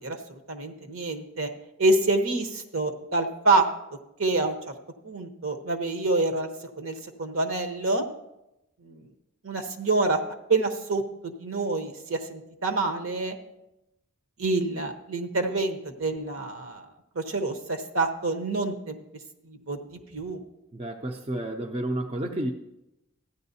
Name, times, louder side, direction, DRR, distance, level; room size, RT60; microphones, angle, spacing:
voice 1, 0.0-1.5 1.8-3.7 4.2-4.5 5.0-6.5 6.8-8.0 8.8-9.0 9.4-10.2 10.5-13.4 14.4-16.8 17.1-19.0 19.5-20.4, right 2 dB, 70° right, 6 dB, 1.0 m, -27 dB
voice 2, 20.7-22.5, right 1 dB, 25° right, 3 dB, 0.5 m, -31 dB
14.0 x 9.8 x 2.7 m, 0.89 s
head